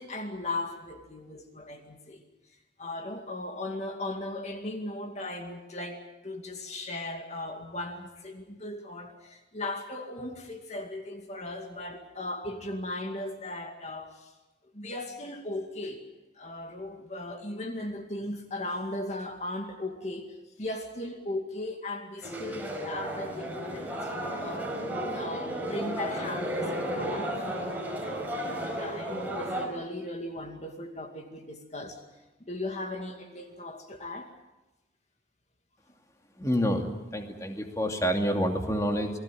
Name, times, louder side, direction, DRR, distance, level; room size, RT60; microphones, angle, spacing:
voice 1, 0.0-2.2 2.8-14.3 14.7-16.0 16.4-24.8 25.1-27.4 28.0-32.0 32.4-34.3, left 2 dB, 40° left, 4 dB, 2.3 m, -37 dB
sound 1, 22.2-29.7, right 1 dB, 10° right, 5.4 m, -33 dB
voice 2, 36.4-39.1, equal, 20° left, 3 dB, 2.6 m, -28 dB
29.0 x 20.0 x 7.6 m, 1.0 s
head